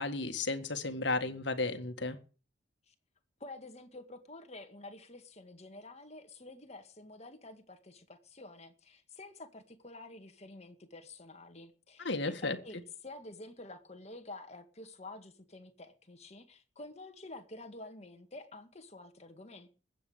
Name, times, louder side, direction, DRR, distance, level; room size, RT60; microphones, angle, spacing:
voice 1, 0.0-2.2 12.0-12.6, left 3 dB, 60° left, 1.9 m, -33 dB
voice 2, 3.4-19.7, left 2 dB, 35° left, 1.9 m, -49 dB
21.0 x 8.4 x 5.1 m
head